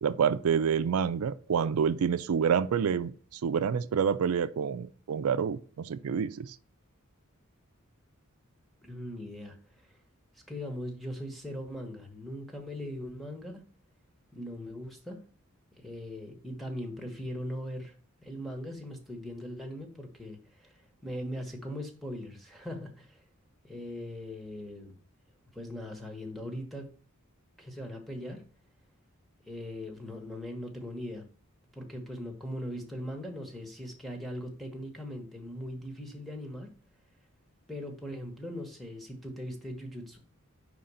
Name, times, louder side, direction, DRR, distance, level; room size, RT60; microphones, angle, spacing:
voice 1, 0.0-6.5, right 7 dB, 85° right, 0.4 m, -28 dB
voice 2, 8.8-9.6 9.9-10.0 10.5-13.6 14.3-15.2 15.8-17.9 18.2-23.2 23.6-25.0 25.5-26.9 27.6-28.4 29.5-31.3 31.7-36.7 37.7-40.2, equal, ahead, 1.1 m, -40 dB
5.0 x 3.8 x 5.5 m
head